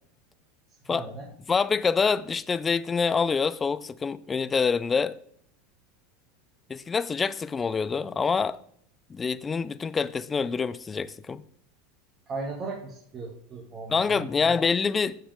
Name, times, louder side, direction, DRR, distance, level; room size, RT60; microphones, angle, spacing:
voice 1, 0.9-1.3 12.3-14.6, right 3 dB, 35° right, 2.1 m, -37 dB
voice 2, 1.5-5.2 6.7-8.6 9.1-11.4 13.9-15.2, left 5 dB, 20° left, 0.5 m, -26 dB
14.5 x 5.6 x 3.6 m
hypercardioid pair, 100°, 0 cm